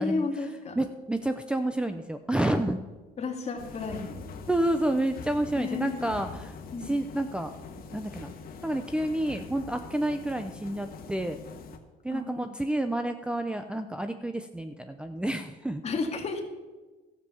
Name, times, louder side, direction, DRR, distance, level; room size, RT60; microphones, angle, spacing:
voice 1, 0.0-0.8 3.2-4.2 5.5-6.1 6.7-6.9 12.1-12.6 15.8-16.4, left 4 dB, 40° left, 3 dB, 2.0 m, -32 dB
voice 2, 0.8-2.8 4.5-6.5 6.8-7.5 7.9-8.3 8.6-11.4 12.0-15.8, right 1 dB, 5° right, 8 dB, 0.6 m, -29 dB
sound 1, 3.6-11.8, left 5 dB, 60° left, 1.5 m, -44 dB
13.0 x 7.5 x 7.0 m, 1.3 s
cardioid pair, 110°, 17 cm